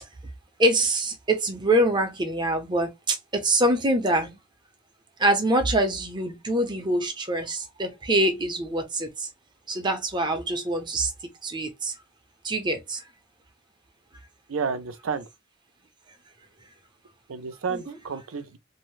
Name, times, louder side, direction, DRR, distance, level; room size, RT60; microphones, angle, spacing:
voice 1, 0.6-4.4 5.2-9.3 9.7-11.1 11.4-11.9 12.4-13.0 17.7-18.0, right 1 dB, 20° right, 0.6 m, -25 dB
voice 2, 14.5-15.2 17.3-18.6, right 5 dB, 80° right, 0.5 m, -31 dB
2.6 x 2.0 x 3.1 m
head